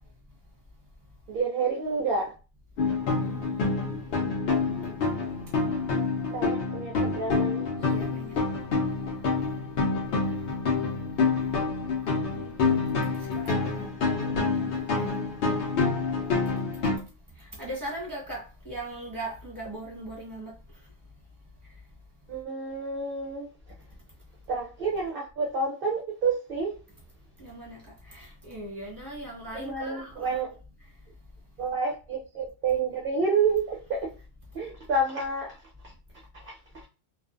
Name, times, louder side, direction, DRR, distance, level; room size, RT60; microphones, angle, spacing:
voice 1, 1.3-2.3 6.3-7.7 22.3-23.5 24.5-26.7 29.5-30.5 31.6-34.1 34.5-35.5 36.4-36.5, right 4 dB, 55° right, 0.7 m, -29 dB
sound 1, 2.8-17.0, left 4 dB, 60° left, 0.7 m, -27 dB
voice 2, 3.1-4.0 7.8-8.3 12.3-15.2 17.6-20.5 27.4-27.8 28.1-30.3, right 1 dB, 15° right, 1.1 m, -40 dB
2.4 x 2.3 x 2.4 m
omnidirectional pair, 1.3 m